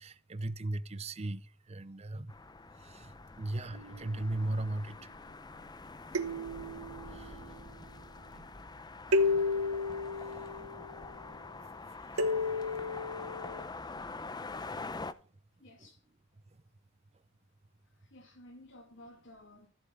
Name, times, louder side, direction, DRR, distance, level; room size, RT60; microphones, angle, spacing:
voice 1, 0.0-2.3 2.8-5.1 7.1-7.6 8.3-8.5 9.2-9.4 10.3-10.5 11.3-11.4 12.3-12.5, right 2 dB, 30° right, 0.6 m, -38 dB
sound 1, 2.3-15.1, left 3 dB, 20° left, 0.6 m, -45 dB
sound 2, 3.7-4.3 6.1-7.5 9.1-11.1 12.2-13.6, left 2 dB, 85° right, 1.0 m, -32 dB
voice 2, 15.6-16.0 17.9-19.7, left 1 dB, 60° left, 2.9 m, -54 dB
14.0 x 7.4 x 3.6 m
head